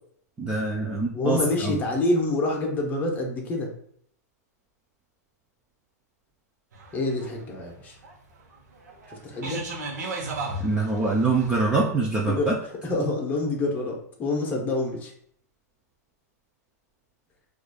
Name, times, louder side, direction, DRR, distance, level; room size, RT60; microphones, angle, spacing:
voice 1, 0.4-1.8 10.6-12.6, right 3 dB, 10° right, -3 dB, 0.4 m, -24 dB
voice 2, 1.1-3.7 6.9-8.0 9.1-9.6 12.3-12.5 12.8-15.1, left 2 dB, 20° left, 0 dB, 0.7 m, -27 dB
sound 1, 6.7-11.7, right 2 dB, 85° right, 0.9 m, -35 dB
4.7 x 2.5 x 2.3 m, 0.63 s
hypercardioid pair, 150°, 9 cm